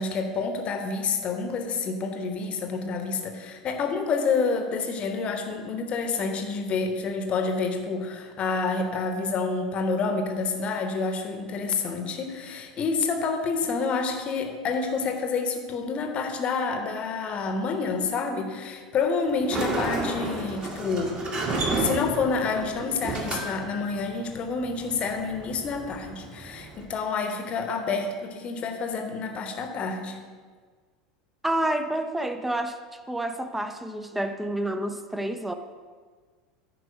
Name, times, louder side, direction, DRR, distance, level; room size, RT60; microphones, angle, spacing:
voice 1, 0.0-21.2 21.8-30.2, left 4 dB, 30° left, 0.9 m, -28 dB
Sliding door, 19.3-26.8, right 2 dB, 30° right, 1.4 m, -32 dB
voice 2, 31.4-32.8 33.1-35.5, right 1 dB, 5° right, 0.5 m, -29 dB
10.0 x 4.8 x 5.0 m
figure-of-eight pair, 80°, 4 cm